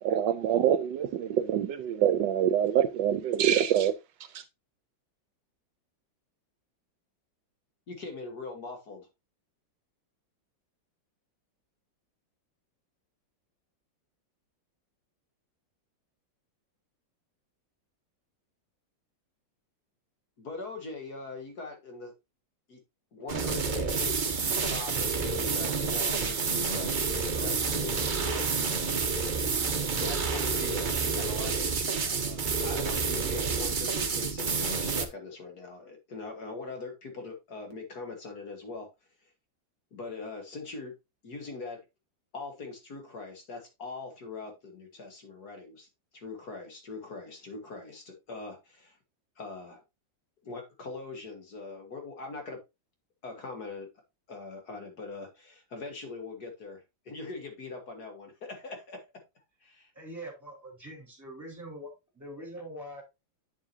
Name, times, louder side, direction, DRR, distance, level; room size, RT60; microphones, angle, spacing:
voice 1, 0.0-3.9 4.3-4.4, right 10 dB, 75° right, 1.3 m, -25 dB
voice 2, 7.9-9.1 20.4-22.1 22.7-22.8 23.1-28.8 30.0-38.9 39.9-40.9 41.2-41.8 42.3-45.9 46.1-49.0 49.4-49.8 50.4-52.6 53.2-53.9 54.3-59.0 59.6-59.9, left 3 dB, 55° left, 2.1 m, -41 dB
sound 1, 23.3-35.1, right 5 dB, 40° right, 0.7 m, -29 dB
voice 3, 59.9-63.0, right 1 dB, 10° right, 3.8 m, -43 dB
8.2 x 7.4 x 2.7 m
omnidirectional pair, 2.0 m